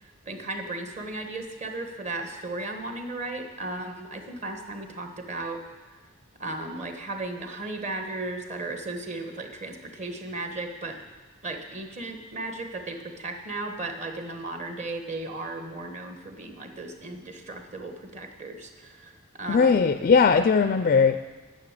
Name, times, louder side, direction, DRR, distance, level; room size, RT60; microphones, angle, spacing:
voice 1, 0.0-5.6 6.4-11.0 11.4-19.9, right 2 dB, 35° right, 5 dB, 1.3 m, -35 dB
voice 2, 19.5-21.2, left 5 dB, 40° left, 10 dB, 0.4 m, -19 dB
10.5 x 6.4 x 8.8 m, 1.3 s
head